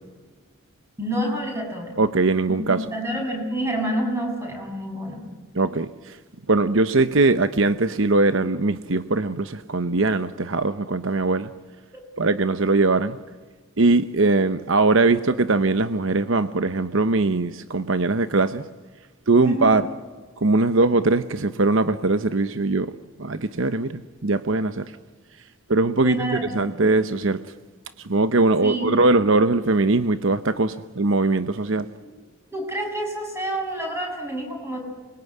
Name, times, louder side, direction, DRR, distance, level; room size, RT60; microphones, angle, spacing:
voice 1, 1.0-2.0 2.7-5.2 11.9-12.1 19.4-19.8 26.0-26.8 28.6-28.9 32.5-34.8, right 1 dB, 10° right, 1 dB, 7.2 m, -28 dB
voice 2, 2.0-2.8 5.5-6.2 6.5-11.5 12.2-13.2 13.8-18.7 19.3-19.8 20.4-22.9 23.2-24.9 25.7-27.4 28.0-31.9, right 3 dB, 65° right, 11 dB, 0.9 m, -21 dB
28.0 x 22.0 x 9.5 m, 1.3 s
head